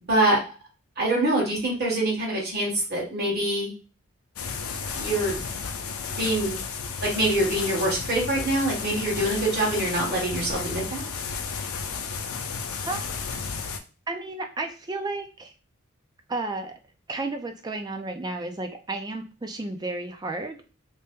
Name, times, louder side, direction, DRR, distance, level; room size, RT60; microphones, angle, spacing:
voice 1, 0.1-0.4 1.0-3.7 4.9-5.4 6.1-6.6 7.0-11.1, right 1 dB, 50° right, -5 dB, 1.3 m, -25 dB
sound 1, 4.4-13.8, left 5 dB, 80° left, 0.5 m, -33 dB
voice 2, 12.9-13.2 14.1-15.5 16.3-16.7 17.1-20.6, right 2 dB, 20° right, 5 dB, 0.3 m, -32 dB
2.7 x 2.1 x 3.5 m, 0.34 s
head